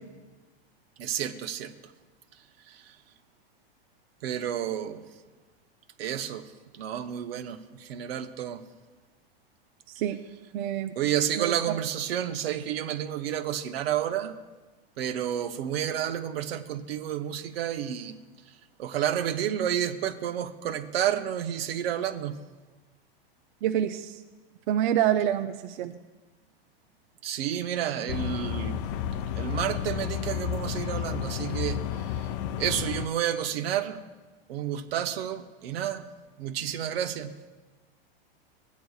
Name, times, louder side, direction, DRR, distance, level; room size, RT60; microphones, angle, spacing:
voice 1, 1.0-1.7 2.7-3.0 4.2-5.0 6.0-8.6 11.0-14.3 15.0-18.2 18.5-18.6 18.8-22.4 27.2-28.8 29.3-32.3 32.6-34.0 34.5-36.1 36.4-37.4, right 10 dB, 75° right, 9 dB, 0.8 m, -30 dB
voice 2, 10.5-10.9 11.4-11.5 23.6-24.2 24.7-25.9, right 11 dB, 50° right, 7 dB, 0.4 m, -26 dB
sound 1, 28.1-33.1, left 9 dB, 60° left, 0.5 m, -31 dB
15.5 x 9.3 x 2.4 m, 1.3 s
supercardioid pair, 145°, 30 cm